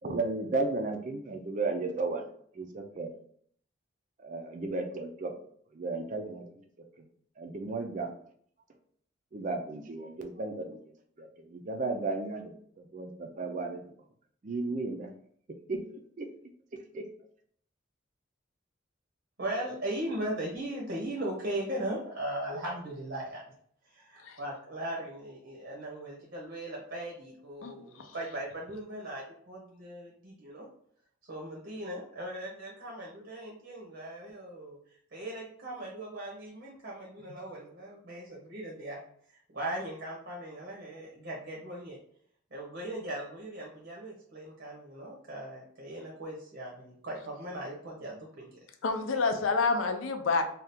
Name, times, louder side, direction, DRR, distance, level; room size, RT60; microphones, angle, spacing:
voice 1, 0.0-2.3 2.6-3.1 4.2-5.3 5.7-6.5 7.4-8.1 9.3-10.8 11.2-13.8 14.4-15.1 15.7-15.8 16.2-16.3 16.9-17.0, right 3 dB, 40° right, 5 dB, 0.4 m, -34 dB
voice 2, 19.4-23.4 23.9-30.6 31.3-34.8 35.1-39.0 39.3-42.0 42.5-48.5, right 1 dB, 60° right, -4 dB, 0.7 m, -38 dB
voice 3, 27.6-28.2 48.8-50.4, left 4 dB, 85° left, 6 dB, 0.5 m, -29 dB
2.7 x 2.3 x 3.4 m, 0.62 s
head